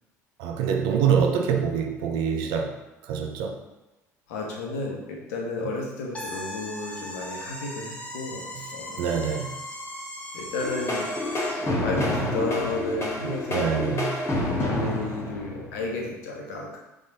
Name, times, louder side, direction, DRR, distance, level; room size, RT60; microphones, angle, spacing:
voice 1, 0.4-2.8 3.0-3.6 9.0-9.6 13.2-14.1, right 7 dB, 60° right, 3 dB, 0.6 m, -25 dB
voice 2, 4.3-8.5 8.7-9.2 10.3-11.1 11.5-13.9 14.5-16.8, left 2 dB, 65° left, -1 dB, 1.0 m, -32 dB
sound 1, 6.1-11.7, left 1 dB, 15° left, 0.8 m, -38 dB
sound 2, 10.6-16.0, left 1 dB, 30° left, 1.2 m, -28 dB
3.7 x 3.6 x 4.0 m, 1.0 s
figure-of-eight pair, 60°, 9 cm